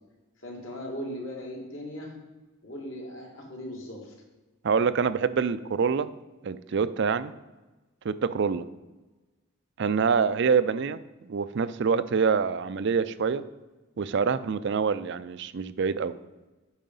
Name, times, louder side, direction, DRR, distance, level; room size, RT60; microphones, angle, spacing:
voice 1, 0.4-2.1 2.6-4.1, equal, 65° left, -1 dB, 2.3 m, -38 dB
voice 2, 4.6-6.1 6.4-7.3 8.0-8.6 9.8-13.4 14.0-16.1, right 5 dB, 55° right, 14 dB, 0.4 m, -26 dB
9.0 x 5.6 x 5.4 m, 1.2 s
head